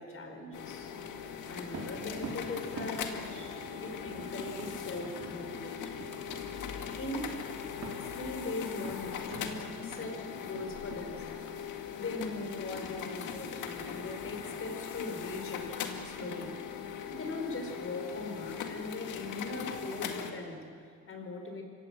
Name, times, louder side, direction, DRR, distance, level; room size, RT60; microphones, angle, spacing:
voice 1, 0.0-6.0 7.0-7.5 8.0-11.5 11.9-16.6 17.1-21.6, left 2 dB, 45° left, 4 dB, 4.6 m, -40 dB
sound 1, 0.5-20.3, left 7 dB, 85° left, 2.0 m, -40 dB
sound 2, 1.7-11.1, right 3 dB, 60° right, 4.2 m, -47 dB
26.0 x 16.0 x 7.7 m, 2.2 s
cardioid pair, 90°, 30 cm